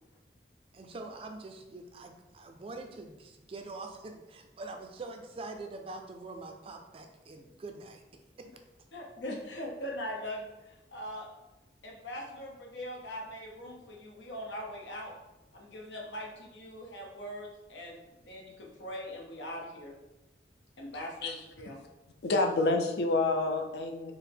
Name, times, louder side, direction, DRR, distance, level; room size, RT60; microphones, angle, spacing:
voice 1, 0.7-8.0 8.4-8.5, right 3 dB, 30° right, 4 dB, 0.3 m, -44 dB
voice 2, 8.9-11.3 11.8-15.1 15.5-19.9 20.8-21.8, equal, 90° left, 0 dB, 0.8 m, -41 dB
voice 3, 22.2-24.1, left 2 dB, 65° left, 4 dB, 0.4 m, -28 dB
4.5 x 2.0 x 3.4 m, 1.0 s
head